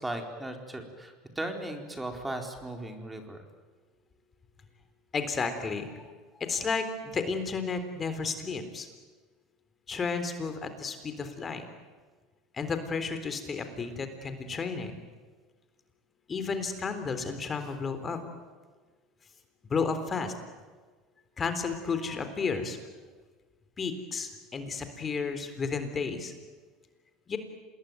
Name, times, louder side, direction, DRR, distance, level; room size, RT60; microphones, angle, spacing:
voice 1, 0.0-3.4, right 1 dB, 10° right, 4 dB, 4.2 m, -37 dB
voice 2, 5.1-5.9 6.4-8.9 9.9-11.7 12.5-15.0 16.3-18.2 19.7-20.3 21.4-22.8 23.8-26.3 27.3-27.4, left 5 dB, 25° left, 9 dB, 3.8 m, -32 dB
27.5 x 20.5 x 9.3 m, 1.4 s
supercardioid pair, 110°, 0 cm